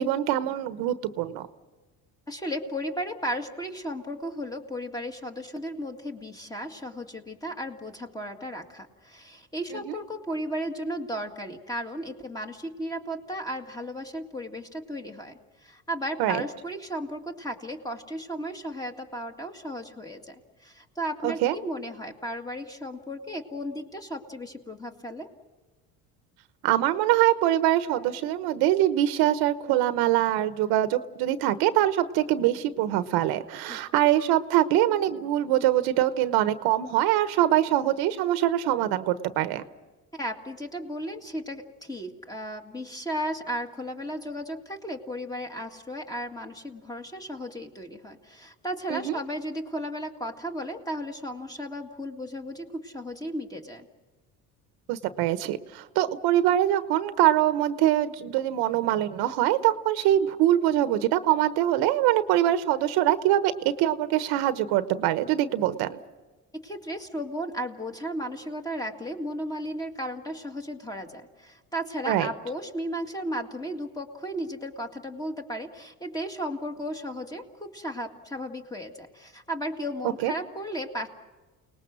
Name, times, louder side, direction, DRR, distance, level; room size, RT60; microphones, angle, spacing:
voice 1, 0.0-1.5 9.7-9.9 16.2-16.4 21.2-21.5 26.6-39.6 48.9-49.2 54.9-66.0 72.1-72.3 80.2-80.3, right 13 dB, 85° right, 12 dB, 1.1 m, -24 dB
voice 2, 2.3-25.3 33.7-33.8 40.1-53.9 66.5-81.1, equal, 10° left, 4 dB, 2.0 m, -35 dB
29.5 x 19.5 x 6.2 m, 1.2 s
cardioid pair, 120°, 37 cm